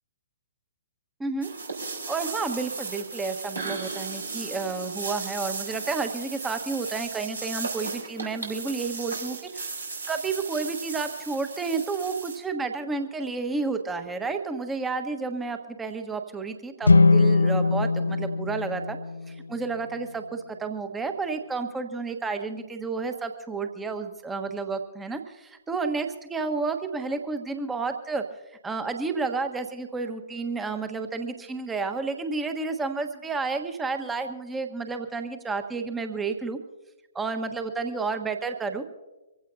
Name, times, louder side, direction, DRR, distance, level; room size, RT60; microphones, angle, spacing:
voice 1, 1.2-1.5 2.1-9.6 10.1-19.0 19.3-28.2 28.6-36.6 37.1-38.8, right 4 dB, 10° right, 6 dB, 1.3 m, -31 dB
sound 1, 1.4-12.4, right 4 dB, 75° right, 4.2 m, -36 dB
sound 2, 16.8-20.1, left 3 dB, 75° left, 0.5 m, -22 dB
25.0 x 16.0 x 2.7 m, 1.1 s
figure-of-eight pair, 120°, 0 cm